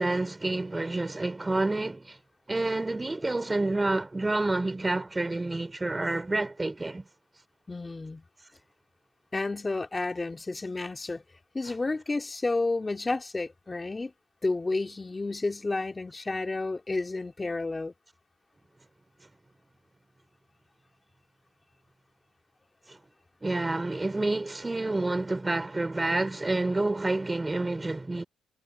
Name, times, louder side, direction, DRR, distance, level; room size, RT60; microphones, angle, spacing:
voice 1, 0.0-2.2 2.5-7.1 22.9-23.0 23.4-28.2, right 2 dB, 15° right, 3.3 m, -28 dB
voice 2, 7.7-8.2 9.3-11.2 11.5-14.1 14.4-17.9, left 3 dB, 20° left, 2.6 m, -31 dB
cardioid pair, 90°, 0 cm